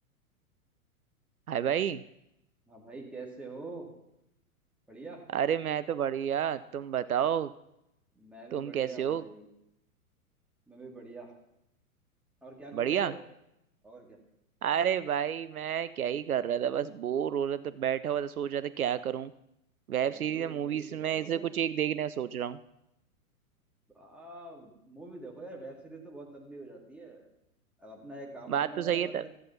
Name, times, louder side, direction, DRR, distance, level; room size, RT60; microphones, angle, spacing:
voice 1, 1.5-2.0 5.3-7.5 8.5-9.2 12.7-13.1 14.6-19.3 19.9-22.6 28.5-29.3, right 9 dB, 75° right, 15 dB, 0.6 m, -30 dB
voice 2, 2.7-3.9 4.9-5.2 8.1-9.5 10.7-11.3 12.4-13.2 13.8-14.2 20.0-21.5 23.9-27.3 27.8-29.3, right 2 dB, 5° right, -2 dB, 2.2 m, -45 dB
14.0 x 8.4 x 5.7 m, 0.84 s
figure-of-eight pair, 105°, 44 cm